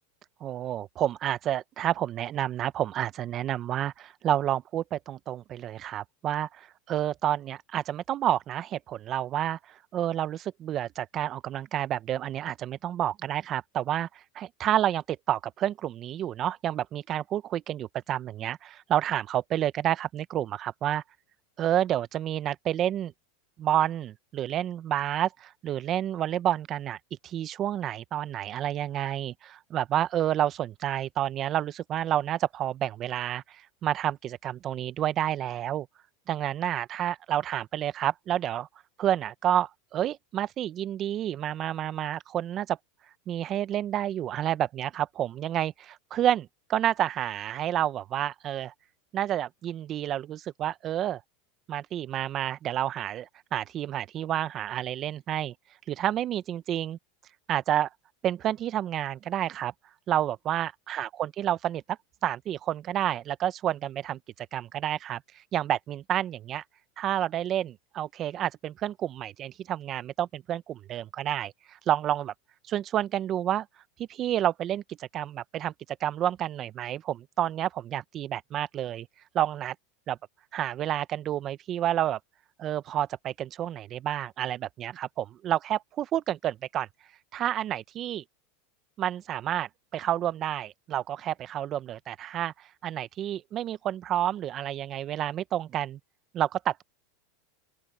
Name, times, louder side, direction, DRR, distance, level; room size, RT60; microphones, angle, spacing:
voice 1, 0.4-21.0 21.6-23.1 23.6-27.0 27.2-35.9 36.3-38.7 39.0-42.8 43.3-48.7 49.1-51.2 51.7-55.5 55.9-57.0 57.5-57.9 58.2-59.7 60.1-61.8 62.2-64.2 64.5-65.2 65.5-66.6 67.0-72.3 72.7-73.7 74.0-75.7 76.0-79.1 79.3-79.7 80.1-80.2 80.5-82.2 82.6-86.9 87.3-88.2 89.0-96.0 96.3-96.8, right 11 dB, 40° right, 0.8 m, -29 dB
open air
supercardioid pair, 115°, 0 cm